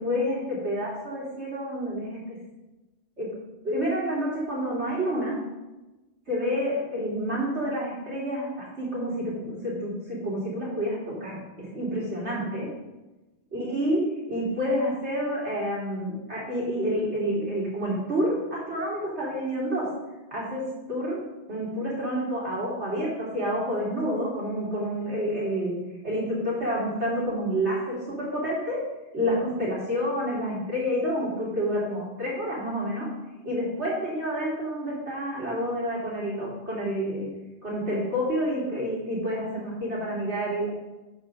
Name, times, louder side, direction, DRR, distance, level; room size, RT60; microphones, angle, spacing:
voice 1, 0.0-2.4 3.2-3.3 3.6-5.4 6.3-12.7 13.5-14.0 14.3-19.8 20.3-20.6 20.9-21.2 21.5-28.8 29.1-33.1 33.4-37.3 37.6-40.7, equal, 75° right, -7 dB, 3.5 m, -29 dB
8.6 x 6.9 x 3.9 m, 1.1 s
omnidirectional pair, 1.2 m